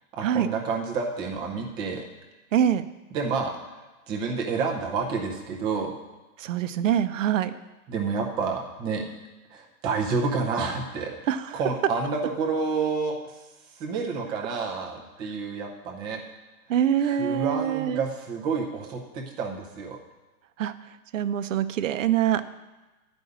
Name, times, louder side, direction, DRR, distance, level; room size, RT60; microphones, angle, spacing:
voice 1, 0.1-2.0 3.1-3.5 4.1-5.9 7.9-9.0 9.5-11.1 11.5-13.4 13.8-16.2 17.0-20.0, right 4 dB, 10° right, 1 dB, 0.6 m, -29 dB
voice 2, 2.5-2.9 6.4-7.5 11.3-11.6 16.7-18.0 20.6-20.7 21.1-22.5, right 10 dB, 55° right, 12 dB, 0.7 m, -24 dB
11.0 x 5.3 x 8.0 m, 1.2 s
hypercardioid pair, 160°, 45 cm